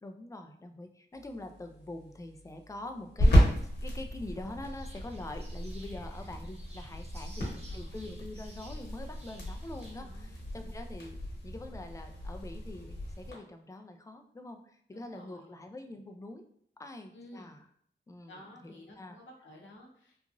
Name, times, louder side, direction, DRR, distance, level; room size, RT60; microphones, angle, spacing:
voice 1, 0.0-3.4 3.8-16.4 16.8-17.7 18.1-19.2, left 2 dB, 15° left, 5 dB, 0.3 m, -44 dB
sound 1, 1.1-13.3, equal, 60° left, 1.0 m, -32 dB
voice 2, 3.2-3.5 7.7-7.9 10.0-10.4 14.9-15.6 17.1-17.5 18.3-20.2, equal, 90° left, -1 dB, 0.6 m, -52 dB
sound 2, 4.7-10.0, right 2 dB, 35° right, 0.7 m, -56 dB
2.9 x 2.4 x 2.5 m, 0.63 s
wide cardioid pair, 85°, 19 cm